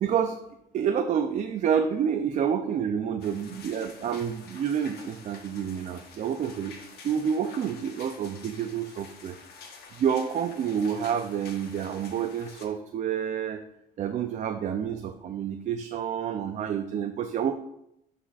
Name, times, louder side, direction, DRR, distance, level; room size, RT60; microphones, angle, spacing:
voice 1, 0.0-0.4 0.7-6.8 7.0-9.4 10.0-13.6 14.0-17.6, right 8 dB, 45° right, 6 dB, 0.4 m, -28 dB
sound 1, 3.2-12.7, left 5 dB, 70° left, 1.1 m, -48 dB
11.0 x 4.2 x 2.4 m, 0.80 s
cardioid pair, 110°, 17 cm